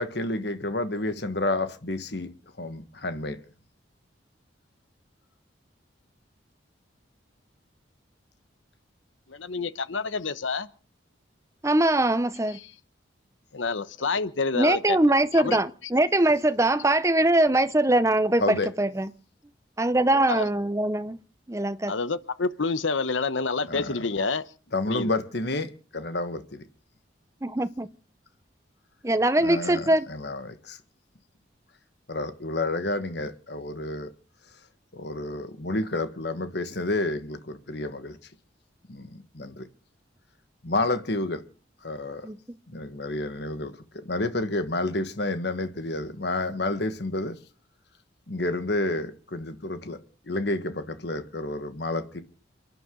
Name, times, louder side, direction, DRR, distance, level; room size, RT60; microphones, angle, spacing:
voice 1, 0.0-2.3 2.6-3.4 18.4-18.7 23.7-24.0 24.7-26.6 29.4-30.8 32.1-34.1 34.9-38.2 38.9-39.7 40.6-41.4 41.8-42.3 42.7-47.4 48.3-50.0 50.3-52.2, left 2 dB, 60° left, 1.5 m, -30 dB
voice 2, 9.3-10.7 13.5-15.0 15.3-15.6 20.3-20.5 21.9-24.4 24.9-25.1, left 4 dB, 85° left, 1.0 m, -28 dB
voice 3, 11.6-12.6 14.5-19.1 19.8-21.2 21.5-21.9 27.4-27.9 29.0-30.1 42.2-42.6, right 1 dB, 15° right, 0.7 m, -22 dB
29.0 x 11.0 x 3.9 m
head